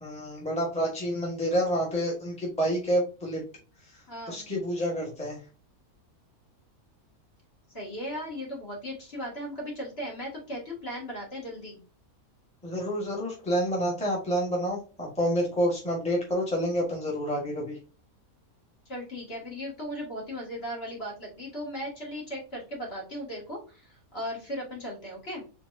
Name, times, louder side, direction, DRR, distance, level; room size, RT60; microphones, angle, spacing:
voice 1, 0.0-3.4 4.3-5.4 12.6-17.8, equal, 5° left, -3 dB, 1.4 m, -28 dB
voice 2, 4.1-4.5 7.7-11.8 18.9-25.4, equal, 45° left, -3 dB, 2.3 m, -37 dB
4.5 x 3.9 x 2.6 m, 0.35 s
omnidirectional pair, 1.5 m